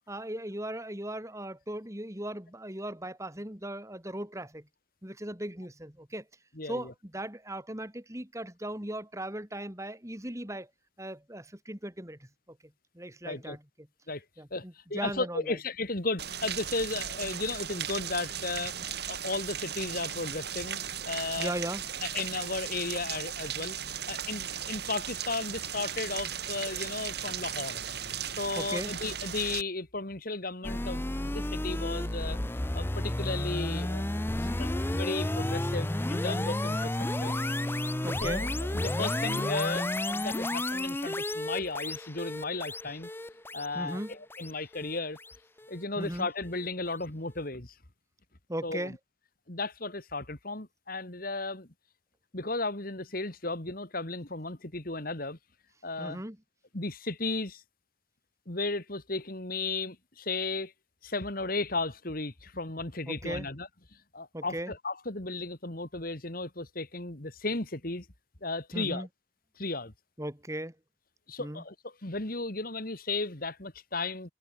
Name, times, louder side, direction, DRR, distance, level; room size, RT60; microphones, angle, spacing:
voice 1, 0.1-4.7 5.0-6.3 6.6-10.7 11.0-12.6 12.9-13.6 14.4-15.6 21.4-21.8 28.6-28.9 38.0-38.4 43.7-44.1 46.0-46.3 48.5-49.0 56.0-56.4 63.1-63.5 64.3-64.7 68.7-69.1 70.2-70.8 71.4-71.6, right 1 dB, 15° right, 2.8 m, -38 dB
voice 2, 6.6-6.9 13.2-13.6 14.1-14.2 14.5-20.8 21.1-21.6 22.0-27.8 28.4-32.4 32.7-34.1 34.6-37.3 38.2-43.1 43.5-45.2 45.7-47.7 48.6-48.9 49.5-51.7 52.3-55.4 55.8-56.2 56.7-57.6 58.5-60.7 61.0-63.7 64.1-68.1 68.4-69.1 69.6-69.9 71.3-74.3, left 3 dB, 50° left, 2.5 m, -35 dB
Rain, 16.2-29.6, right 9 dB, 55° right, 5.0 m, -37 dB
sound 1, 30.6-45.8, left 1 dB, 10° left, 0.6 m, -32 dB
head